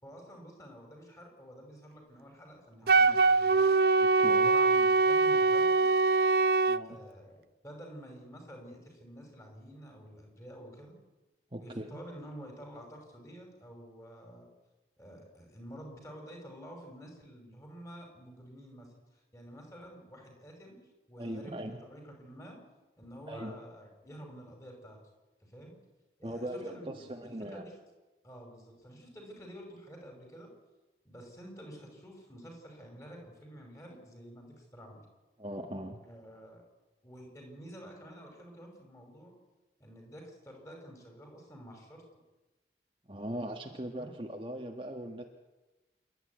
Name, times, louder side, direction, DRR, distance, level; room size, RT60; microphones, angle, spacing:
voice 1, 0.0-3.6 4.3-5.9 6.8-11.0 11.5-14.5 15.0-18.9 19.3-22.6 23.0-25.0 25.4-25.8 26.2-27.8 28.2-30.5 31.0-35.1 36.0-36.6 37.0-39.3 39.8-42.0 44.0-44.1, equal, 15° left, 2 dB, 5.6 m, -49 dB
Wind instrument woodwind instrument, 2.9-6.8, right 3 dB, 60° right, 0.7 m, -23 dB
voice 2, 4.0-4.5 6.7-7.0 11.5-12.0 21.2-21.8 23.3-23.5 26.2-27.7 35.4-36.0 43.1-45.2, right 1 dB, 30° right, 3 dB, 1.5 m, -40 dB
28.0 x 12.5 x 9.5 m, 1.1 s
head